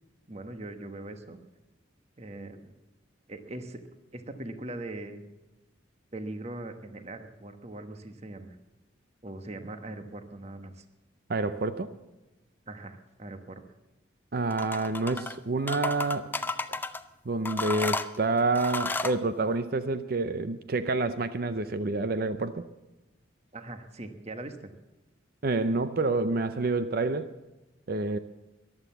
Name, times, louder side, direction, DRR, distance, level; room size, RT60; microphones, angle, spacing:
voice 1, 0.3-1.4 2.2-2.7 3.3-3.8 4.1-5.2 6.1-8.6 9.2-10.8 12.7-13.6 16.4-16.5 23.5-24.7, right 2 dB, 35° right, 8 dB, 1.2 m, -41 dB
voice 2, 11.3-11.9 14.3-16.3 16.7-16.8 17.2-22.6 25.4-27.3 27.9-28.2, right 3 dB, 50° right, 11 dB, 0.6 m, -28 dB
sound 1, 14.5-15.3 15.7-17.0 17.4-19.2, left 3 dB, 10° left, 0.5 m, -32 dB
14.5 x 11.0 x 7.2 m, 1.0 s
head